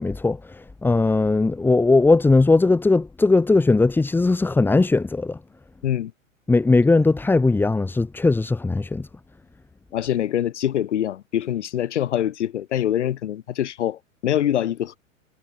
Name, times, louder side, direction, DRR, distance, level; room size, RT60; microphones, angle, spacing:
voice 1, 0.0-5.4 6.5-9.1, left 3 dB, 5° left, 1.1 m, -19 dB
voice 2, 9.9-15.0, left 11 dB, 60° left, 3.3 m, -24 dB
figure-of-eight pair, 100°, 40 cm